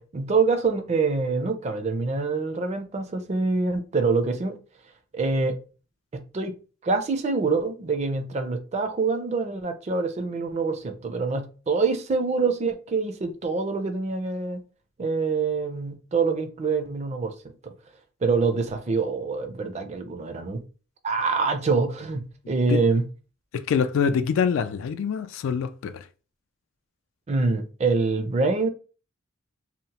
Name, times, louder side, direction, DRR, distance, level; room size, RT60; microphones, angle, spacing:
voice 1, 0.0-4.6 5.1-5.6 6.1-6.6 6.8-14.6 15.0-17.3 17.6-17.7 18.2-20.6 21.0-23.0 27.3-28.7, right 4 dB, 35° right, 0.4 m, -25 dB
voice 2, 23.5-26.0, left 6 dB, 80° left, 0.3 m, -25 dB
2.8 x 2.0 x 2.8 m
head